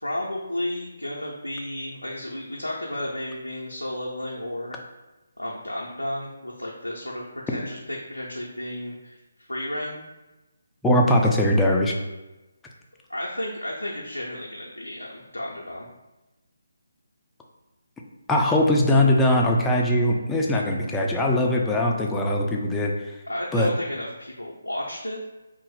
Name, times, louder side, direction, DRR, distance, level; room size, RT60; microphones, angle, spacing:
voice 1, 0.0-4.8 5.4-9.2 9.5-10.0 13.1-15.9 23.3-25.2, left 1 dB, 90° left, -3 dB, 0.5 m, -32 dB
voice 2, 10.8-11.9 18.3-22.9 23.5-23.7, left 1 dB, 10° left, -1 dB, 0.3 m, -21 dB
2.5 x 2.0 x 3.9 m, 1.1 s
figure-of-eight pair, 145°, 0 cm